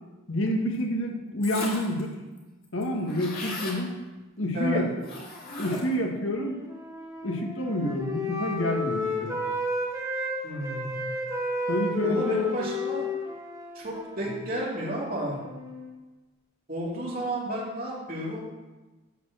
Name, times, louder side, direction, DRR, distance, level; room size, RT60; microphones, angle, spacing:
voice 1, 0.3-2.1 2.7-3.9 4.4-4.9 5.6-6.5 7.2-9.4 11.7-12.6, left 1 dB, 70° left, 1 dB, 1.6 m, -28 dB
sound 1, 1.4-2.0 2.4-2.5 2.6-3.8 5.0-6.1, left 1 dB, 45° left, 2.5 m, -36 dB
Wind instrument woodwind instrument, 5.4-10.3 10.6-15.9, left 1 dB, 15° right, 1.7 m, -33 dB
voice 2, 10.4-11.0 12.0-13.1 13.7-15.4 16.7-18.5, equal, 45° right, -4 dB, 2.7 m, -32 dB
12.0 x 4.4 x 7.8 m, 1.2 s
head